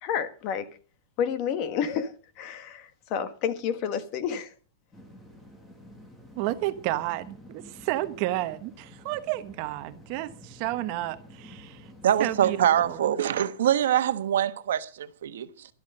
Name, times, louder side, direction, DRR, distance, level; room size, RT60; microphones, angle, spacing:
voice 1, 0.0-0.7 1.2-4.5, left 8 dB, 35° left, 1.4 m, -30 dB
sound 1, 4.9-13.0, equal, 10° left, 1.8 m, -50 dB
voice 2, 6.3-11.9 12.2-13.2, right 16 dB, 35° right, 1.0 m, -31 dB
voice 3, 12.0-15.7, right 10 dB, 85° right, 1.2 m, -24 dB
13.0 x 11.5 x 5.4 m
supercardioid pair, 170°, 0 cm